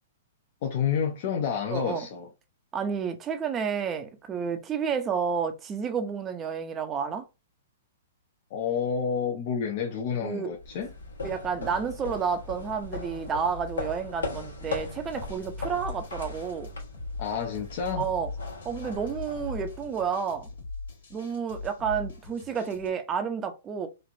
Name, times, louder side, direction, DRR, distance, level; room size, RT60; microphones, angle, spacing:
voice 1, 0.6-2.3 8.5-10.9 17.2-18.1, left 7 dB, 50° left, 0.6 m, -29 dB
voice 2, 1.7-2.1 2.7-7.2 10.2-10.5 11.2-16.7 18.0-18.3 18.6-20.5 21.1-23.9, right 6 dB, 20° right, 0.6 m, -30 dB
sound 1, 10.6-20.2, left 3 dB, 85° left, 1.2 m, -38 dB
sound 2, 15.1-22.9, left 3 dB, 70° left, 1.3 m, -42 dB
3.2 x 2.5 x 2.5 m
hypercardioid pair, 125°, 0 cm